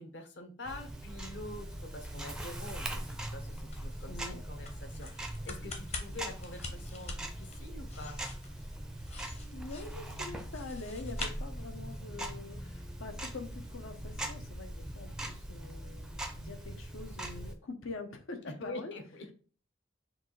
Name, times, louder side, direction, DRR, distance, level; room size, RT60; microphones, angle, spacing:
voice 1, 0.0-8.2 18.5-19.3, left 2 dB, 60° left, 1.0 m, -46 dB
Tick-tock, 0.6-17.5, right 1 dB, 5° right, 0.4 m, -41 dB
sound 1, 1.5-12.1, left 3 dB, 30° left, 0.8 m, -48 dB
voice 2, 4.1-4.4 9.2-9.3 9.5-19.0, left 3 dB, 80° left, 0.9 m, -45 dB
6.3 x 2.4 x 3.1 m
head